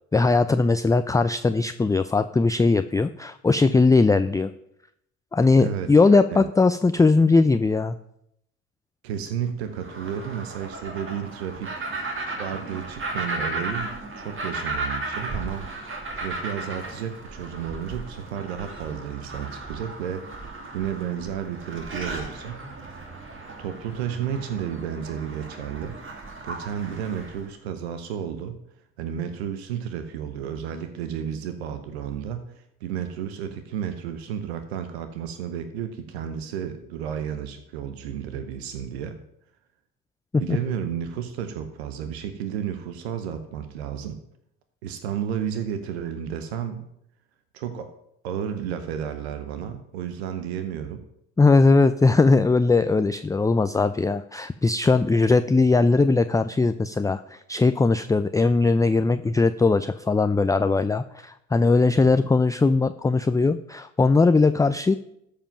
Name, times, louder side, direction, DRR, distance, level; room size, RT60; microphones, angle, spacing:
voice 1, 0.1-4.5 5.3-8.0 40.3-40.6 51.4-64.9, left 3 dB, 10° left, 10 dB, 0.4 m, -20 dB
voice 2, 5.6-6.5 9.0-11.9 12.4-15.7 16.1-20.5 20.7-22.7 23.6-26.0 26.4-28.6 29.0-39.2 40.4-44.2 44.8-46.9 47.5-47.9 48.2-51.0, right 8 dB, 90° right, 9 dB, 0.9 m, -32 dB
sound 1, 9.7-27.5, right 2 dB, 40° right, 2.5 m, -35 dB
13.5 x 5.1 x 5.7 m, 0.78 s
hypercardioid pair, 60°, 31 cm